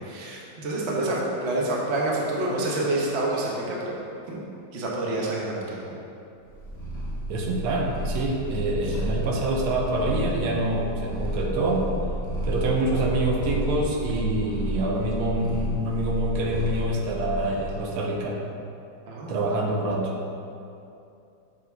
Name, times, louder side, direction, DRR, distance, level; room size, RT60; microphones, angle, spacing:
voice 1, 0.0-3.9 4.3-4.4 4.7-5.8 8.9-9.0 19.1-19.3, right 2 dB, 45° right, -4 dB, 1.0 m, -28 dB
Purr, 6.4-17.7, right 1 dB, 15° left, 0.6 m, -31 dB
voice 2, 7.3-11.9 12.4-18.4 19.3-20.1, right 1 dB, 85° right, -1 dB, 1.7 m, -26 dB
7.5 x 3.8 x 4.5 m, 2.7 s
omnidirectional pair, 2.3 m